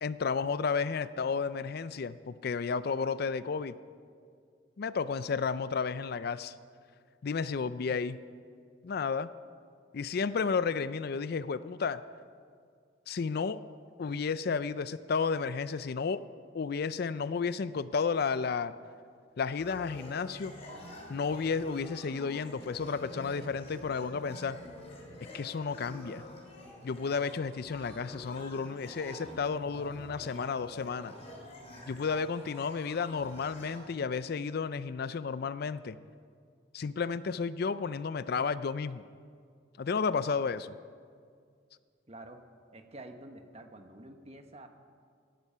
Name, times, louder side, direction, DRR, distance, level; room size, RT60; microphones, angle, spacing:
voice 1, 0.0-3.8 4.8-6.5 7.2-8.2 8.8-9.3 9.9-12.0 13.1-13.6 14.0-16.2 16.5-18.7 19.4-20.5 21.1-24.6 25.3-26.2 26.8-31.1 31.9-36.0 36.7-39.0 39.8-40.7, left 5 dB, 55° left, 15 dB, 0.4 m, -32 dB
sound 1, 19.6-33.8, left 1 dB, 35° left, 3.5 m, -47 dB
voice 2, 42.1-42.4 42.7-44.7, right 1 dB, 35° right, 6 dB, 1.1 m, -48 dB
17.5 x 12.0 x 5.5 m, 2.1 s
head